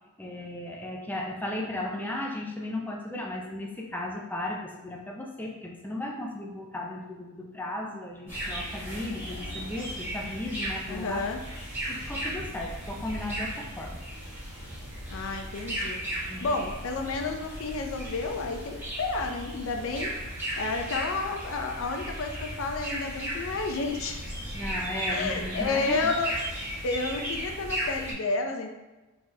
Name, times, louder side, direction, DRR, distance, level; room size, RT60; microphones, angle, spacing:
voice 1, 0.2-11.2 11.9-14.0 16.3-16.6 24.5-26.1, left 1 dB, 10° left, 0 dB, 0.5 m, -35 dB
sound 1, 8.3-28.1, right 1 dB, 10° right, 1.5 m, -36 dB
voice 2, 10.9-11.4 15.1-24.2 25.1-26.3 26.8-28.7, left 3 dB, 60° left, 4 dB, 0.4 m, -31 dB
5.1 x 3.4 x 2.7 m, 1.1 s
head